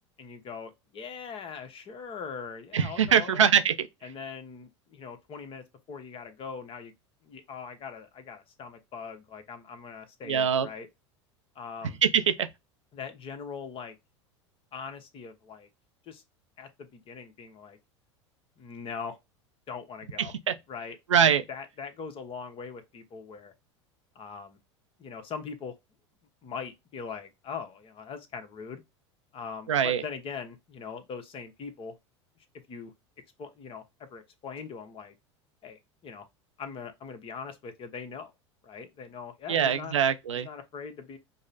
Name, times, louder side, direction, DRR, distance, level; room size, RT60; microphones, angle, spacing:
voice 1, 0.2-3.4 4.0-6.9 7.2-10.9 11.5-12.0 12.9-14.0 14.7-15.7 16.0-16.2 16.6-17.8 18.6-19.2 19.7-20.3 20.7-23.5 24.1-24.6 25.0-25.7 26.4-28.8 29.3-32.0 32.4-32.9 33.4-35.1 35.6-36.3 36.6-38.3 38.6-39.9 40.4-41.2, left 6 dB, 35° left, 0.9 m, -41 dB
voice 2, 2.7-3.9 10.3-10.7 12.0-12.5 20.5-20.6 21.1-21.4 29.7-30.0 39.5-40.5, right 8 dB, 85° right, 0.5 m, -23 dB
5.2 x 2.0 x 2.6 m
hypercardioid pair, 85°, 15 cm